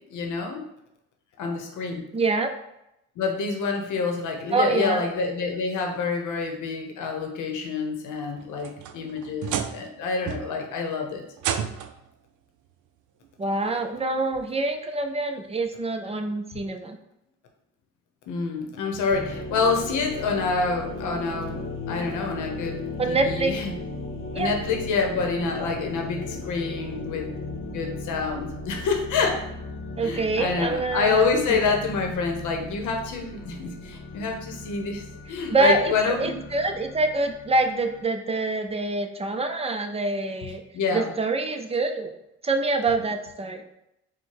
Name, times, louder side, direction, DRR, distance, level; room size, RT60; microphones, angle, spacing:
voice 1, 0.1-0.6 1.4-2.0 3.2-11.2 16.5-16.6 18.3-22.8 23.1-23.7 24.3-27.2 27.7-29.4 30.0-36.4 40.4-41.1, left 4 dB, 80° left, 3 dB, 0.8 m, -27 dB
voice 2, 2.1-2.5 4.5-5.0 13.4-17.0 23.0-23.5 24.3-24.5 30.0-31.8 35.5-40.6 40.9-42.1 42.4-43.6, right 3 dB, 20° right, 6 dB, 0.5 m, -25 dB
sound 1, 8.4-10.0 10.3-10.7 11.4-12.1 13.2-13.3 14.0-14.1 15.7-15.8, right 8 dB, 80° right, 0.5 m, -31 dB
sound 2, 19.1-38.0, left 2 dB, 45° left, 0.8 m, -36 dB
4.4 x 2.2 x 4.6 m, 0.83 s
cardioid pair, 90°, 30 cm